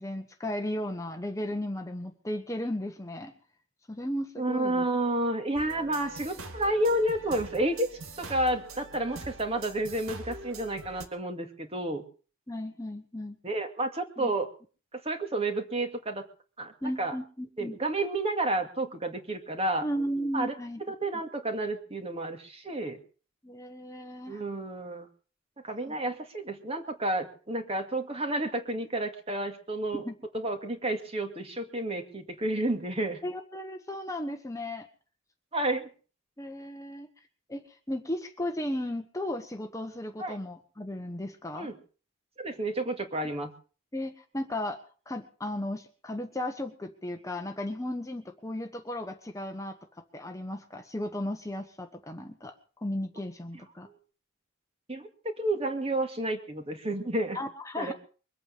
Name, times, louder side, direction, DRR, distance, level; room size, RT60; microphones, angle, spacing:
voice 1, 0.0-3.3 3.9-4.9 12.5-13.4 14.2-14.3 16.8-17.7 19.8-20.8 23.4-24.4 25.9-26.0 29.9-30.1 33.2-34.9 36.4-37.1 37.5-41.7 43.9-44.8 45.1-49.8 50.1-52.5 52.8-53.9 57.3-57.9, left 1 dB, 15° left, 6 dB, 1.2 m, -35 dB
voice 2, 4.4-7.9 8.2-12.0 13.4-14.5 15.0-16.2 16.6-17.1 17.6-19.9 20.3-20.5 20.9-23.0 24.3-25.1 25.6-30.0 30.3-33.2 35.5-35.9 40.2-40.4 41.5-41.7 42.4-43.5 54.9-57.4 57.8-57.9, right 1 dB, 30° right, 6 dB, 2.3 m, -30 dB
sound 1, 5.6-11.1, right 2 dB, 80° right, 2.4 m, -44 dB
23.0 x 8.8 x 6.8 m, 0.40 s
head